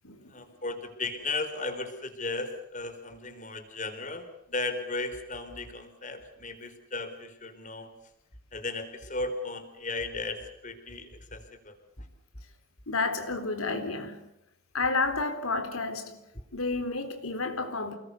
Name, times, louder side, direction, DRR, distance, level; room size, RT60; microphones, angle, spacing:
voice 1, 0.3-7.9 8.5-11.7, left 3 dB, 35° left, 4.1 m, -35 dB
voice 2, 12.9-14.3 14.7-16.2 16.5-18.0, left 3 dB, 90° left, 3.9 m, -30 dB
29.0 x 20.5 x 6.9 m
head